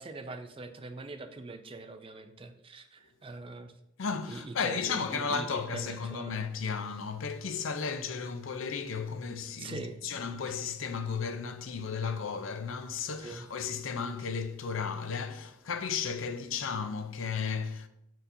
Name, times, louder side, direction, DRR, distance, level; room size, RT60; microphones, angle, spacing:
voice 1, 0.0-3.7 4.3-6.4 9.6-10.0 13.2-13.5, right 3 dB, 25° right, 0.4 m, -42 dB
voice 2, 4.0-17.9, left 5 dB, 70° left, 0.5 m, -34 dB
8.6 x 4.5 x 2.6 m
head